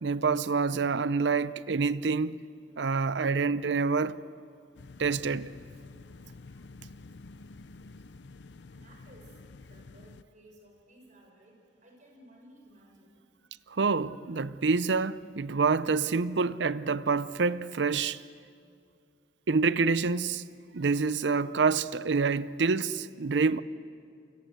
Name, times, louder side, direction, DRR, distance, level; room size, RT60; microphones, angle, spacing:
voice 1, 0.0-2.4 2.8-4.2 5.0-5.5 13.7-18.2 19.5-20.5 20.7-23.6, right 4 dB, 75° right, 0.6 m, -27 dB
sound 1, 4.7-10.2, left 3 dB, 70° left, 0.6 m, -49 dB
voice 2, 8.7-9.3 9.6-11.5 11.8-13.1, right 1 dB, 45° right, 6.6 m, -56 dB
28.0 x 25.0 x 7.9 m
head